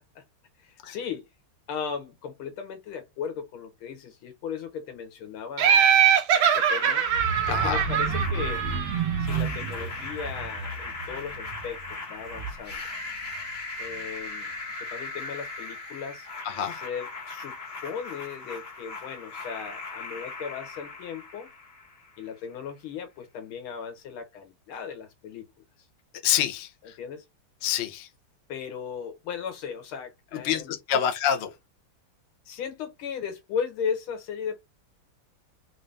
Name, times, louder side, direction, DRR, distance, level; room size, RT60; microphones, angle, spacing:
voice 1, 0.6-1.3 1.7-6.0 6.5-7.1 7.5-8.6 9.2-11.8 12.1-12.8 13.8-14.5 14.8-16.3 16.7-17.6 17.8-21.5 22.2-25.5 27.0-27.2 28.5-31.0 32.5-34.6, left 7 dB, 90° left, 1.8 m, -36 dB
Laughter, 5.6-9.2, right 9 dB, 75° right, 1.5 m, -22 dB
sound 1, 6.3-22.3, left 3 dB, 35° left, 1.3 m, -38 dB
sound 2, 7.1-12.8 13.2-13.5 13.8-13.9, right 5 dB, 45° right, 1.6 m, -32 dB
voice 2, 7.5-7.8 16.4-16.8 26.2-27.0 27.6-28.1 30.4-31.5, left 9 dB, 75° left, 0.6 m, -27 dB
3.8 x 2.6 x 3.3 m
omnidirectional pair, 2.2 m